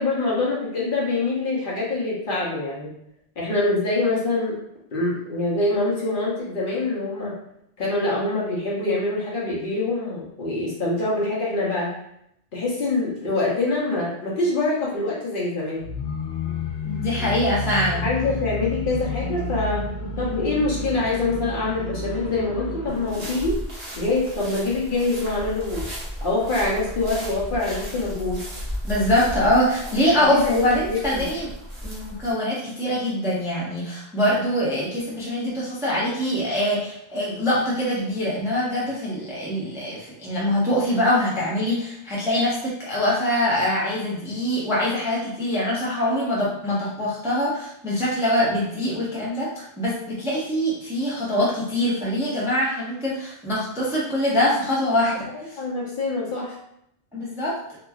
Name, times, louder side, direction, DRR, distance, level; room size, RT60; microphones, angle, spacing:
voice 1, 0.0-2.9 3.4-4.6 4.9-7.3 7.8-11.9 12.5-15.9 18.0-19.8 20.2-23.6 24.0-25.9 26.2-28.4 30.2-30.6 30.9-31.3 55.5-56.6, left 2 dB, 55° left, -5 dB, 0.9 m, -25 dB
sound 1, 15.8-23.5, left 3 dB, 85° left, 0.8 m, -30 dB
voice 2, 16.8-18.1 28.8-31.5 31.8-55.3 57.1-57.6, left 1 dB, 5° right, -6 dB, 0.5 m, -23 dB
sound 2, 22.9-32.3, equal, 35° right, 0.8 m, -34 dB
2.8 x 2.4 x 2.3 m, 0.76 s
omnidirectional pair, 1.0 m